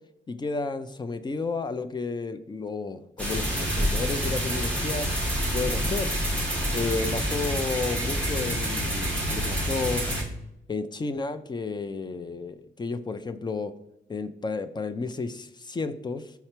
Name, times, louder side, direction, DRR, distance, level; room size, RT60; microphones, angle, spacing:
voice 1, 0.3-5.1 5.5-6.1 6.7-10.0 10.7-13.7 14.1-16.2, left 4 dB, 20° left, 9 dB, 0.4 m, -32 dB
sound 1, 3.2-10.2, equal, 5° left, 1.5 m, -27 dB
5.8 x 4.4 x 4.4 m, 0.86 s
wide cardioid pair, 180°, 21 cm